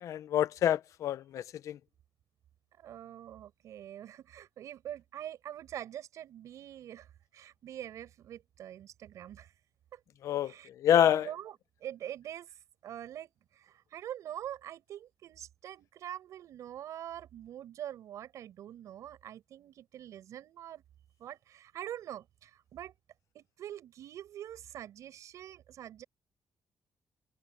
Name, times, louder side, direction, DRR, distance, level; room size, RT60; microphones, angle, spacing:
voice 1, 0.0-1.8 10.2-10.5 10.8-11.3, left 10 dB, 80° left, 0.9 m, -27 dB
voice 2, 2.8-9.5 9.9-10.0 10.4-10.7 11.0-12.5 12.8-20.8 21.2-22.9 23.3-26.0, right 11 dB, 85° right, 6.5 m, -44 dB
cardioid pair, 120°, 5 cm